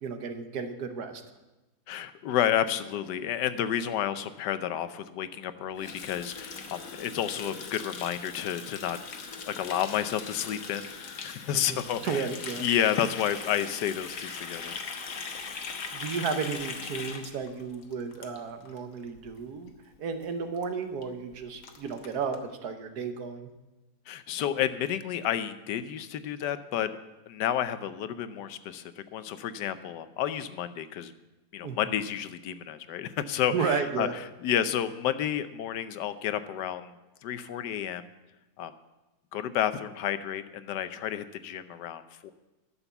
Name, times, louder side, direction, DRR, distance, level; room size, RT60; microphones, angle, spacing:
voice 1, 0.0-1.2 11.5-12.6 15.9-19.7 20.0-23.5 31.6-31.8 33.5-34.1, right 5 dB, 70° right, 7 dB, 1.5 m, -33 dB
voice 2, 1.9-9.0 9.5-12.3 12.6-14.8 24.1-26.9 27.3-31.1 31.5-36.9 37.2-38.1 38.6-38.7 39.3-42.3, left 10 dB, 85° left, 12 dB, 1.3 m, -31 dB
Water tap faucet, 5.8-18.8 19.1-19.3 19.6-20.0 20.2-20.3 20.5-20.6 21.0-21.1 21.3-22.4, left 5 dB, 55° left, 1.3 m, -40 dB
11.5 x 6.9 x 7.0 m, 1.1 s
omnidirectional pair, 1.8 m